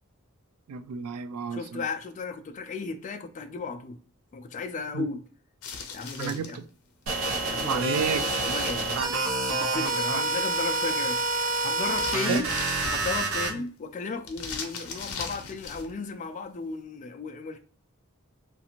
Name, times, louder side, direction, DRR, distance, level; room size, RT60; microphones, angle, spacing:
voice 1, 0.7-1.8 4.9-5.1 6.2-6.6 7.6-8.2 8.9-9.3 10.1-10.2 12.3-12.5, right 7 dB, 90° right, 0.3 m, -31 dB
voice 2, 1.5-4.0 4.3-5.2 5.9-6.6 7.4-8.0 8.4-9.0 9.5-11.2 11.5-12.5 12.9-17.6, left 4 dB, 35° left, 0.3 m, -34 dB
sound 1, 5.6-6.6 8.2-9.6 11.8-13.3 14.3-15.9, left 5 dB, 85° left, 0.6 m, -39 dB
sound 2, 7.1-13.5, right 2 dB, 70° right, 0.8 m, -28 dB
2.6 x 2.4 x 2.8 m
head